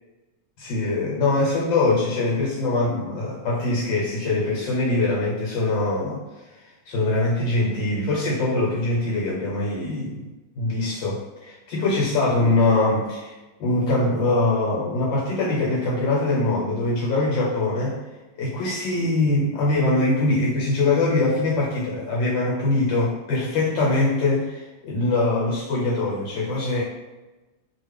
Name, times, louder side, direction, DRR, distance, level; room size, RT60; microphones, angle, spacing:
voice 1, 0.6-6.2 6.9-10.3 10.6-18.0 18.4-26.8, left 2 dB, 85° left, -5 dB, 1.6 m, -23 dB
3.2 x 2.3 x 3.3 m, 1.1 s
omnidirectional pair, 2.0 m